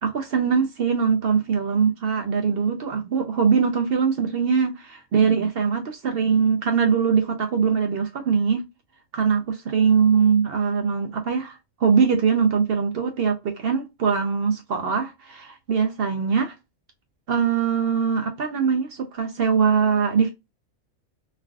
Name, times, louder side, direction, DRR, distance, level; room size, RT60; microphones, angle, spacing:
voice 1, 0.0-8.6 9.1-9.4 9.7-16.6 17.3-20.3, right 6 dB, 60° right, 0.6 m, -22 dB
3.3 x 2.4 x 2.3 m
omnidirectional pair, 1.5 m